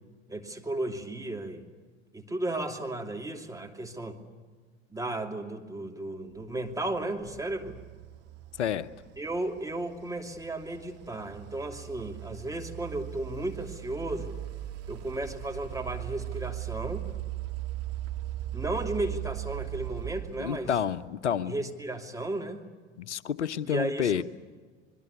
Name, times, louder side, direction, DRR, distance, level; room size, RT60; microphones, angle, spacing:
voice 1, 0.3-1.7 2.1-4.2 4.9-7.8 9.2-14.3 14.9-17.1 18.5-20.7 21.5-22.6 23.6-24.2, right 2 dB, 10° right, 4 dB, 2.9 m, -34 dB
sound 1, 6.6-21.1, right 14 dB, 45° right, 2.4 m, -39 dB
voice 2, 8.6-8.9 20.4-21.5 23.0-24.2, left 8 dB, 75° left, 16 dB, 0.9 m, -29 dB
26.0 x 22.0 x 8.4 m, 1.5 s
figure-of-eight pair, 75°, 35 cm